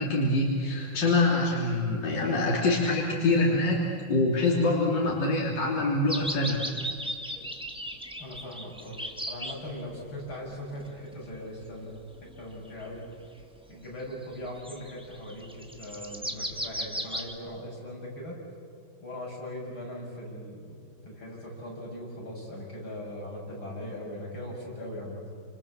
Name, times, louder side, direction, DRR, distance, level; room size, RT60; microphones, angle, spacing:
voice 1, 0.0-6.6, left 2 dB, 60° left, -3 dB, 3.8 m, -25 dB
sound 1, 6.1-9.6 10.3-11.5 12.0-13.0 13.4-13.5 14.2-17.3, equal, 5° right, 1.5 m, -36 dB
voice 2, 8.2-9.0 9.3-13.0 13.7-18.4 19.0-25.4, left 1 dB, 85° left, -3 dB, 8.0 m, -40 dB
29.0 x 28.0 x 7.4 m, 2.5 s
omnidirectional pair, 2.2 m